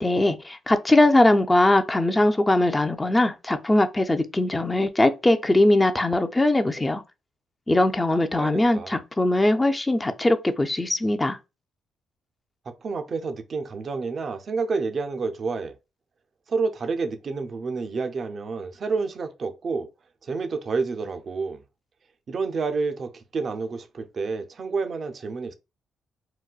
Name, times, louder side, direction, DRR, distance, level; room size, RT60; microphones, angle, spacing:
voice 1, 0.0-7.0 7.7-11.4, left 1 dB, 15° left, 0.5 m, -21 dB
voice 2, 8.4-9.0 12.8-15.7 16.5-19.9 20.2-21.6 22.3-25.5, right 4 dB, 50° right, 0.5 m, -29 dB
3.9 x 2.2 x 2.3 m
cardioid pair, 85°, 0 cm